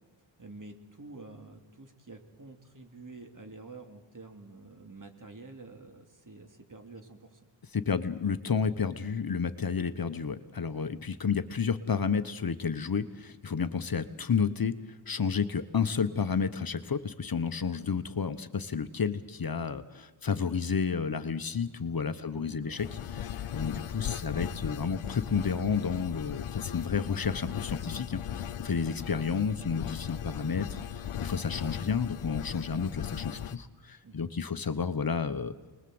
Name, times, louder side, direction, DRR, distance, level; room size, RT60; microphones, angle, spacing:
voice 1, 0.4-7.5 22.3-22.9 34.0-34.3, right 3 dB, 40° right, 5 dB, 3.0 m, -48 dB
voice 2, 7.7-22.9 23.2-35.5, left 6 dB, 45° left, 11 dB, 1.2 m, -31 dB
sound 1, 22.8-33.6, left 10 dB, 85° left, 0.9 m, -38 dB
28.0 x 21.0 x 7.9 m, 1.3 s
cardioid pair, 65°, 48 cm